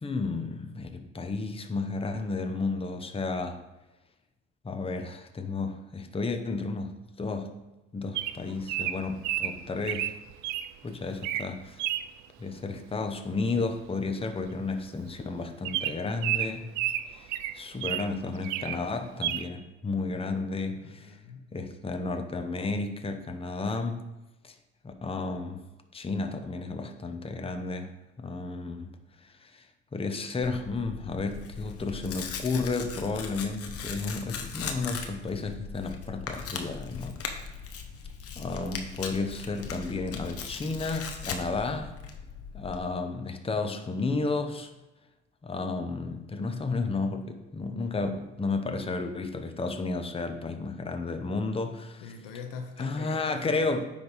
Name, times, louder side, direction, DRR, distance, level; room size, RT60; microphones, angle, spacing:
voice 1, 0.0-3.6 4.6-6.9 7.2-7.5 7.9-10.1 10.8-11.8 12.4-16.7 17.1-20.8 21.5-24.0 24.4-24.5 24.8-25.6 25.9-27.9 28.2-28.9 29.4-29.6 29.9-37.5 38.4-41.9 42.5-44.7 45.4-52.0 52.8-53.8, left 3 dB, 15° left, 6 dB, 0.9 m, -32 dB
Bird vocalization bird call bird song, 8.2-10.7 11.1-11.5 11.8-12.1 13.6-13.8 14.1-14.2 14.4-14.6 15.1-15.2 15.7-18.1 18.4-18.8 19.2-19.5, right 13 dB, 60° right, 0.5 m, -31 dB
voice 2, 20.1-20.4 20.8-21.5 52.0-53.8, left 5 dB, 70° left, 6 dB, 0.9 m, -42 dB
Tearing, 30.4-42.8, left 6 dB, 45° left, 1.0 m, -39 dB
9.7 x 3.5 x 4.1 m, 1.0 s
hypercardioid pair, 65°, 34 cm